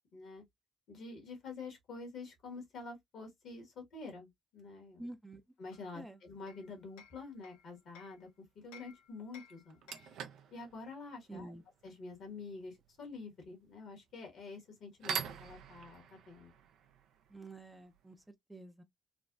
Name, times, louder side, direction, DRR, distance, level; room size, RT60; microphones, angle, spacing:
voice 1, 0.1-0.4 0.9-5.1 5.6-8.3 8.5-9.8 10.5-11.5 11.8-16.5, left 3 dB, 65° left, 1.4 m, -48 dB
voice 2, 5.0-5.4 5.9-6.2 11.3-11.6 17.3-18.2 18.5-18.8, right 2 dB, 10° right, 0.5 m, -48 dB
Hammer, 5.7-8.2 8.7-10.3, left 7 dB, 85° left, 0.5 m, -59 dB
sound 1, 6.6-6.8 8.9-9.0 9.5-18.2, right 8 dB, 70° right, 0.5 m, -46 dB
3.3 x 2.1 x 2.4 m
hypercardioid pair, 60°, 0 cm